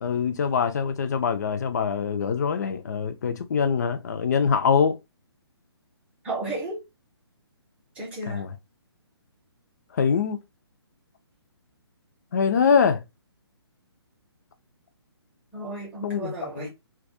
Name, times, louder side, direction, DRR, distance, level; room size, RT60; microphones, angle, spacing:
voice 1, 0.0-5.0 8.3-8.6 9.9-10.4 12.3-13.0 16.0-16.7, left 6 dB, 40° left, 0.4 m, -24 dB
voice 2, 6.2-6.8 8.0-8.5 15.5-16.7, right 2 dB, 10° right, 0.6 m, -33 dB
2.3 x 2.2 x 2.6 m
figure-of-eight pair, 135°, 14 cm